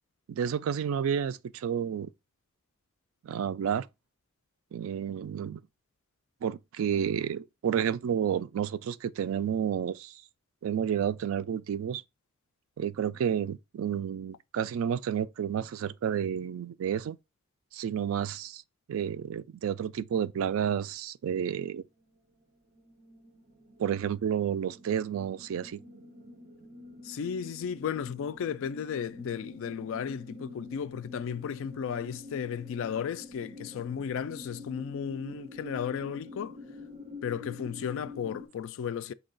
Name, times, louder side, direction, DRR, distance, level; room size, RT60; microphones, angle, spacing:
voice 1, 0.3-2.1 3.2-3.9 4.7-5.6 6.4-10.2 10.6-12.0 12.8-17.2 17.7-18.6 18.9-21.8 23.8-25.8, right 8 dB, 70° right, 0.3 m, -30 dB
sound 1, 22.0-22.4 22.7-38.5, left 2 dB, 45° right, 0.7 m, -47 dB
voice 2, 27.0-36.6 37.2-39.1, left 7 dB, 65° left, 0.3 m, -34 dB
6.1 x 2.3 x 3.8 m
head